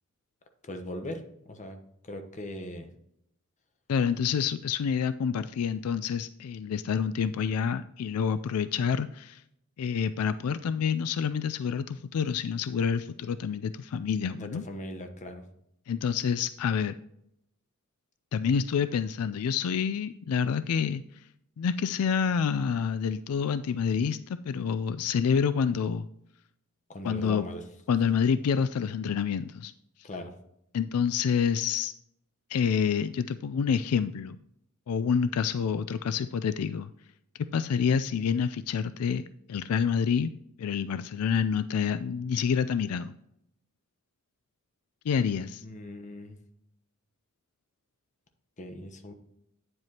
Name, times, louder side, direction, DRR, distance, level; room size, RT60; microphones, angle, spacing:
voice 1, 0.6-1.8 2.0-2.9 14.4-15.4 26.9-27.6 30.0-30.3 45.6-46.4 48.6-49.1, left 1 dB, 35° left, 6 dB, 1.0 m, -39 dB
voice 2, 3.9-9.4 9.8-14.6 15.9-17.0 18.3-21.0 21.6-26.1 27.0-27.4 27.9-29.7 30.7-31.9 32.5-34.4 34.9-36.9 37.5-40.3 40.6-43.1 45.1-45.6, left 6 dB, 80° left, 13 dB, 0.4 m, -28 dB
9.2 x 7.8 x 2.9 m, 0.77 s
head